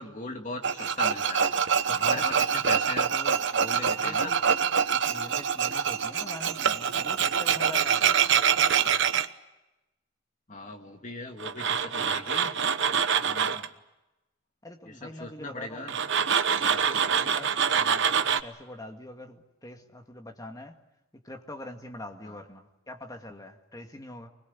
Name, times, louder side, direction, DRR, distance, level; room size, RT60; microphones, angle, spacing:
voice 1, 0.0-4.4 10.5-12.6 14.9-15.9 16.6-16.9 22.2-22.4, left 2 dB, 35° left, 4 dB, 2.4 m, -39 dB
Tools, 0.6-9.3 11.4-13.7 15.9-18.4, right 7 dB, 55° right, 1.0 m, -25 dB
voice 2, 3.8-4.3 4.9-8.0 13.2-13.7 14.6-15.9 16.5-20.8 21.1-24.3, left 1 dB, 15° left, 4 dB, 2.1 m, -44 dB
25.0 x 21.0 x 8.6 m, 0.99 s
head